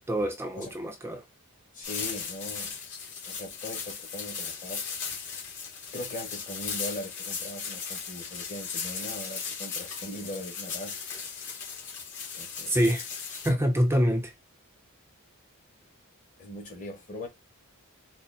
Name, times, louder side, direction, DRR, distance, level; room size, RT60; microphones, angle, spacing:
voice 1, 0.1-1.2 12.7-13.0 13.4-14.3, equal, 10° right, 0.5 m, -25 dB
voice 2, 1.7-2.7 3.2-4.8 5.9-11.0 12.3-12.8 16.4-17.3, left 1 dB, 35° left, 1.5 m, -40 dB
sound 1, 1.8-13.5, left 6 dB, 55° left, 2.1 m, -37 dB
4.2 x 2.0 x 4.1 m
head